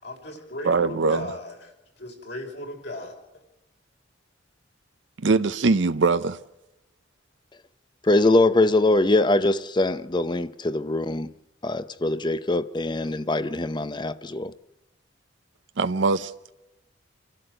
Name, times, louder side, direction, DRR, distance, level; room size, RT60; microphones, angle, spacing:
voice 1, 0.0-1.7 2.0-3.4, left 1 dB, 60° left, 5.2 m, -37 dB
voice 2, 0.6-1.3 5.2-6.4 15.8-16.5, right 4 dB, 75° right, 0.7 m, -22 dB
voice 3, 8.0-11.3 11.6-14.5, left 2 dB, 25° left, 0.6 m, -22 dB
29.0 x 12.5 x 7.8 m
head